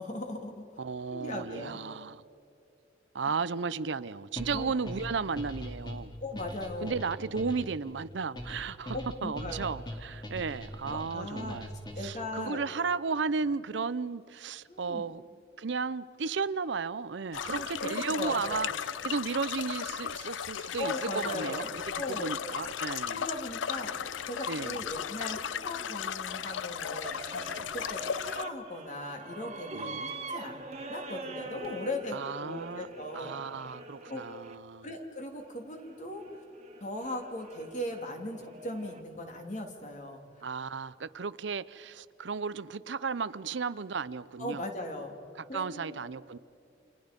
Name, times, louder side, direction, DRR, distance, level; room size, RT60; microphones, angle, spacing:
voice 1, 0.0-0.6 1.1-1.8 4.5-4.7 5.1-5.2 6.2-7.0 8.9-9.7 10.9-11.6 12.0-12.6 14.7-15.0 17.3-18.7 20.8-22.4 23.1-24.0 24.3-27.4 27.7-30.0 30.3-30.6 30.9-33.4 34.1-34.2 34.8-36.2 36.8-40.2 44.4-45.2 45.5-46.1, left 1 dB, 40° left, 3.0 m, -38 dB
voice 2, 0.8-2.2 3.1-6.1 6.8-11.7 12.0-15.2 15.6-21.8 22.1-23.2 24.5-24.8 29.7-30.1 32.1-32.9 33.1-34.9 40.4-44.6 45.4-46.4, right 5 dB, 75° right, 0.6 m, -34 dB
sound 1, 4.4-12.3, equal, 25° left, 2.6 m, -41 dB
sound 2, 17.3-28.4, left 8 dB, 90° left, 0.5 m, -36 dB
sound 3, 23.8-34.5 35.3-39.0, right 2 dB, 35° right, 1.7 m, -45 dB
29.0 x 27.5 x 5.3 m
head